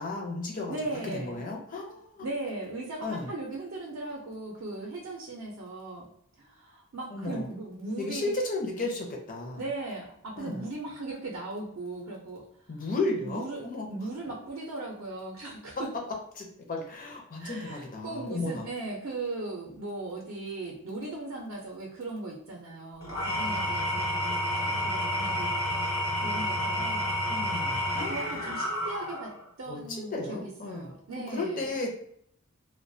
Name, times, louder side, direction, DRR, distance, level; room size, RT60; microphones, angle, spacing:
voice 1, 0.0-0.8 1.1-2.3 3.0-3.3 7.1-7.5 8.0-9.6 10.4-10.7 12.7-13.9 16.4-18.7 27.3-28.5 29.7-30.9 31.3-31.9, left 2 dB, 40° left, 1 dB, 0.5 m, -34 dB
voice 2, 0.7-1.4 2.2-6.1 6.4-8.3 9.5-12.5 13.2-15.9 17.4-25.5 26.2-27.1 28.1-31.7, right 2 dB, 70° right, -2 dB, 0.5 m, -38 dB
Engine / Tools, 23.0-29.4, equal, 70° left, 1.0 m, -30 dB
2.3 x 2.1 x 2.6 m, 0.68 s
head